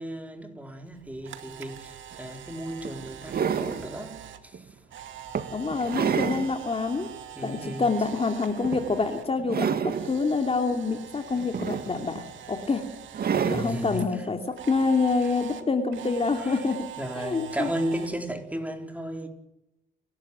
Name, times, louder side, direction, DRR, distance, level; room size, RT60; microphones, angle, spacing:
voice 1, 0.0-4.8 7.3-7.9 13.4-14.3 15.2-15.3 16.4-16.7 17.0-19.3, right 1 dB, 5° right, 4.3 m, -35 dB
Camera, 0.9-9.3 9.6-14.0 14.6-18.1, right 9 dB, 75° right, 2.4 m, -44 dB
sound 1, 2.1-2.2 2.8-3.9 4.5-4.7 5.3-6.5 7.0-7.1 8.6-9.0 9.4-10.1 11.3-12.2 13.1-13.8 15.1-15.2, right 7 dB, 50° right, 2.0 m, -28 dB
voice 2, 5.5-7.1 7.4-12.8 13.5-14.4 14.7-16.9 17.2-17.7, left 4 dB, 30° left, 2.8 m, -27 dB
30.0 x 12.5 x 9.3 m
cardioid pair, 90°, 20 cm